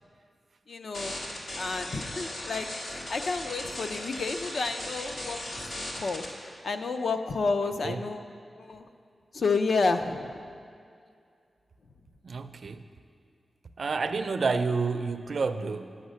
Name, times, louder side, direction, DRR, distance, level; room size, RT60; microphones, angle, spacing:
voice 1, 0.7-1.2 1.6-5.4 5.7-6.2 6.6-8.2 8.6-8.9 9.3-10.5, left 4 dB, 60° left, 7 dB, 0.5 m, -30 dB
sound 1, 0.9-6.2, left 1 dB, 75° left, 1.7 m, -37 dB
voice 2, 12.2-12.9 13.8-16.0, right 4 dB, 55° right, 9 dB, 0.4 m, -29 dB
9.4 x 6.4 x 6.3 m, 2.3 s
wide cardioid pair, 155°, 0 cm